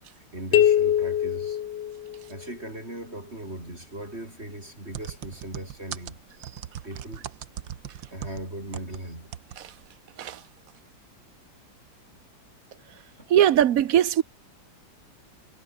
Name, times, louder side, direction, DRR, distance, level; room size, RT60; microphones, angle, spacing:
voice 1, 0.2-1.6 2.3-6.2 6.8-7.3 8.1-9.3 13.2-13.3, right 1 dB, 35° right, 7.4 m, -38 dB
sound 1, 0.5-2.5, left 10 dB, 75° left, 1.7 m, -23 dB
sound 2, 4.9-9.0 9.3-9.6 9.9-10.0, right 10 dB, 90° right, 1.8 m, -38 dB
voice 2, 13.3-14.2, right 10 dB, 60° right, 1.0 m, -20 dB
omnidirectional pair, 2.0 m